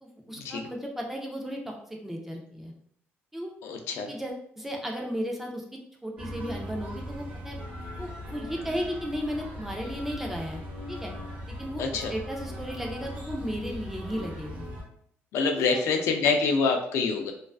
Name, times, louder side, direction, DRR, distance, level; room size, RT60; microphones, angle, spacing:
voice 1, 0.0-2.7 3.3-3.5 3.9-5.6 6.0-7.6 8.0-10.6 10.9-11.1 11.5-14.6 15.6-16.2, equal, 5° right, 0 dB, 0.3 m, -35 dB
voice 2, 3.6-4.1 11.8-12.1 15.3-17.3, left 4 dB, 85° left, 4 dB, 0.4 m, -26 dB
sound 1, 6.2-14.8, equal, 35° right, 0.7 m, -39 dB
2.4 x 2.4 x 2.2 m, 0.65 s
cardioid pair, 170°, 5 cm